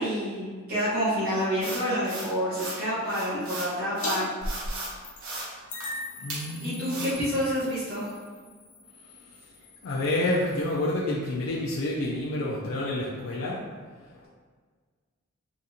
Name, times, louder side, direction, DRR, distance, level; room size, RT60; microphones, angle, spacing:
voice 1, 0.0-4.3 6.5-8.1, equal, 45° right, -12 dB, 1.4 m, -28 dB
sound 1, 1.6-2.8 3.1-4.9 5.2-5.5 5.8-5.9 6.3-6.4 6.9-7.1, right 2 dB, 85° right, 1.0 m, -36 dB
sound 2, 4.0-4.2 4.4-5.3 5.7-10.8, left 1 dB, 40° left, 0.7 m, -39 dB
voice 2, 6.2-7.2 9.8-13.7 14.1-14.3, left 1 dB, 65° left, -5 dB, 0.4 m, -29 dB
3.8 x 2.5 x 2.8 m, 1.5 s
head